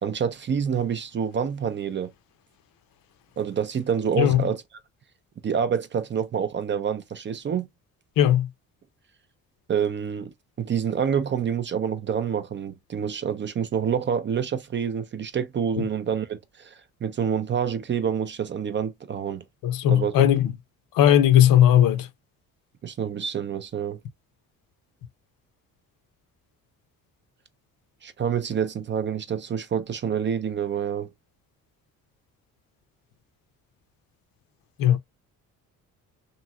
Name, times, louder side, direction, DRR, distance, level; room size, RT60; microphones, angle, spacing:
voice 1, 0.0-2.1 3.4-4.6 5.4-7.7 9.7-19.4 19.9-20.3 22.8-24.0 28.0-31.1, right 7 dB, 30° right, 0.4 m, -27 dB
voice 2, 8.2-8.5 19.6-20.5 21.0-22.1 34.8-35.0, left 11 dB, 65° left, 0.6 m, -17 dB
3.0 x 2.7 x 2.2 m
supercardioid pair, 75°, 36 cm